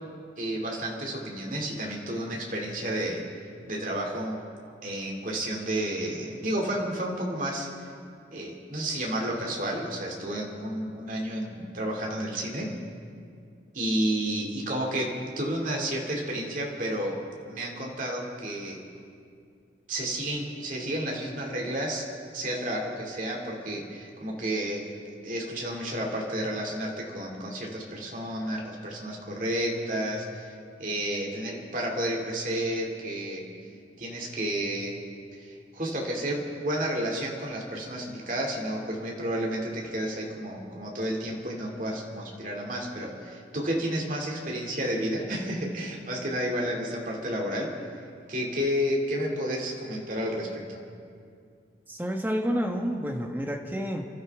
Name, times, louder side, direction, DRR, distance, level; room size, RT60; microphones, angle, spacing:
voice 1, 0.4-3.2 3.7-4.4 4.8-7.7 8.3-12.7 13.7-17.2 17.5-18.8 19.9-22.1 22.3-24.9 25.2-33.4 34.0-35.0 35.4-47.9 48.3-50.8, right 1 dB, 45° right, -1 dB, 2.5 m, -31 dB
voice 2, 51.9-54.1, equal, 10° right, 2 dB, 1.2 m, -29 dB
29.5 x 12.5 x 3.6 m, 2.3 s
head